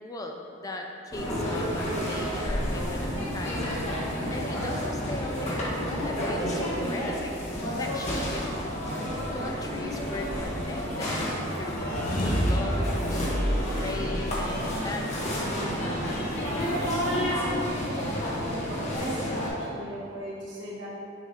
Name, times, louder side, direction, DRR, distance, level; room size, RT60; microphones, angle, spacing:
voice 1, 0.0-3.7 4.0-8.8 9.3-11.2 11.6-15.4, left 2 dB, 20° left, 2 dB, 0.3 m, -38 dB
Flower Market Columbia Road, 1.1-19.5, equal, 35° left, 1.1 m, -30 dB
Magical transformation, 8.9-19.7, left 1 dB, 50° left, 1.0 m, -40 dB
sound 1, 11.6-14.8, equal, 85° left, 1.3 m, -29 dB
voice 2, 18.7-20.9, equal, 70° right, -6 dB, 1.4 m, -38 dB
6.8 x 4.9 x 2.8 m, 2.7 s
head